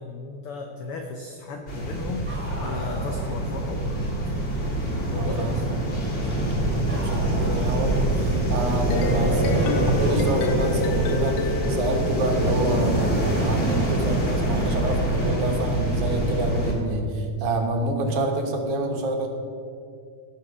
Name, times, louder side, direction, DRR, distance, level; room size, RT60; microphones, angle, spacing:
voice 1, 0.0-4.3 5.0-5.6 6.1-6.7 8.1-8.2, left 3 dB, 85° left, 4 dB, 1.2 m, -36 dB
sound 1, 1.7-16.7, right 1 dB, 25° left, 1.5 m, -25 dB
Bark, 2.2-3.3 6.9-7.9 9.5-11.0 12.7-12.8 14.7-14.8 15.9-16.0, right 1 dB, 5° right, 0.9 m, -38 dB
voice 2, 5.1-5.6 6.2-19.3, right 2 dB, 75° right, 3 dB, 2.6 m, -28 dB
sound 2, 8.9-13.0, left 4 dB, 70° left, 1.5 m, -30 dB
16.0 x 6.0 x 6.1 m, 2.4 s
omnidirectional pair, 3.5 m